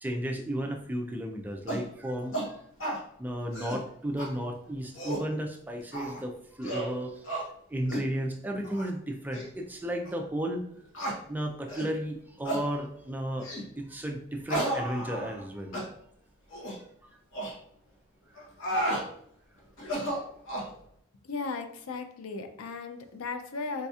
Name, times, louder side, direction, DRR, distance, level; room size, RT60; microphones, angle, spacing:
voice 1, 0.0-2.6 3.2-7.3 7.7-10.6 11.3-13.5 13.8-15.8, right 1 dB, 10° right, 3 dB, 0.3 m, -34 dB
sound 1, 1.7-1.9 2.3-2.5 2.8-3.0 3.4-3.8 4.2-4.3 4.8-5.3 5.9-6.2 6.6-6.9 7.2-7.4 7.9-8.1 8.6-8.9 9.3-9.4 10.0-10.1 10.9-11.2 11.7-11.9 12.4-12.6 13.4-13.7 14.5-15.4 15.7-15.9 16.5-16.8 17.3-17.5 18.3-19.0 19.8-20.7, right 1 dB, 65° left, 0.9 m, -33 dB
voice 2, 21.2-23.9, left 4 dB, 85° left, 7 dB, 0.4 m, -36 dB
4.1 x 2.7 x 2.3 m, 0.69 s
head